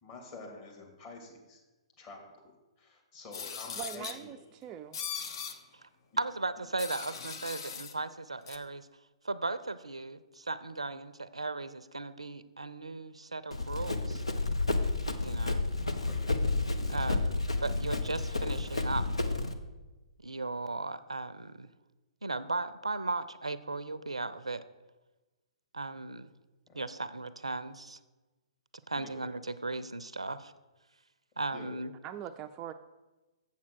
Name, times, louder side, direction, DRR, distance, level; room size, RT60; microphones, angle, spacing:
voice 1, 0.0-1.6 2.0-4.3 6.1-6.2 16.1-16.4 26.7-26.8 28.9-29.2 31.5-31.8, left 3 dB, 30° left, 0 dB, 2.3 m, -48 dB
sound 1, 3.3-4.2 4.9-5.6 6.8-7.9 8.5-8.6, left 6 dB, 50° left, 0.8 m, -39 dB
voice 2, 3.8-4.4 4.6-5.0 32.0-32.7, right 10 dB, 25° right, 8 dB, 0.3 m, -41 dB
voice 3, 6.2-8.9 9.2-14.2 15.2-15.7 16.9-19.1 20.2-21.7 22.2-24.6 25.7-26.3 26.7-28.0 28.9-30.5 31.4-31.9, right 3 dB, 85° right, 15 dB, 0.5 m, -36 dB
Run, 13.5-19.5, left 2 dB, 85° left, 0.8 m, -31 dB
7.4 x 7.2 x 6.1 m, 1.2 s
figure-of-eight pair, 120°, 3 cm